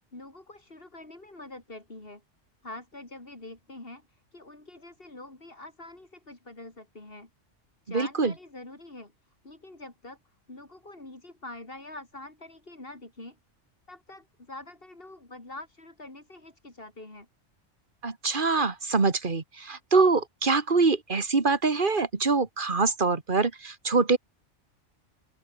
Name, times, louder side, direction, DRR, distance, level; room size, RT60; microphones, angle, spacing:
voice 1, 0.1-2.2 2.6-7.3 7.8-10.2 10.5-13.4 13.9-17.3, left 2 dB, 50° left, 4.6 m, -45 dB
voice 2, 7.9-8.3 18.0-24.2, right 4 dB, 45° right, 2.1 m, -24 dB
open air
omnidirectional pair, 1.3 m